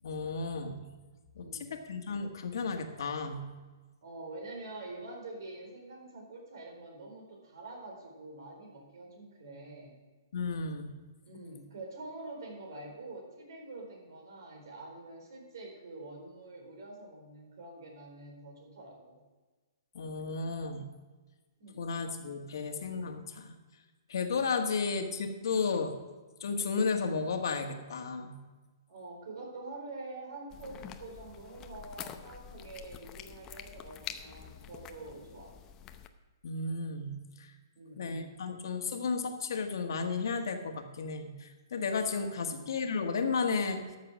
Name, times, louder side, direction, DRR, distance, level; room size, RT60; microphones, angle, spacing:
voice 1, 0.0-0.8 1.3-3.4 10.3-10.9 19.9-20.9 21.8-23.6 24.1-25.9 26.4-28.4 36.4-37.5 38.0-43.8, left 4 dB, 70° left, 5 dB, 1.6 m, -33 dB
voice 2, 1.4-1.8 4.0-10.0 11.2-19.2 21.6-21.8 28.9-35.5 37.7-38.3 42.3-42.7, right 2 dB, 65° right, 0 dB, 4.1 m, -46 dB
sound 1, 30.5-36.1, left 9 dB, 25° left, 0.7 m, -47 dB
13.0 x 6.7 x 6.3 m, 1.3 s
hypercardioid pair, 140°, 2 cm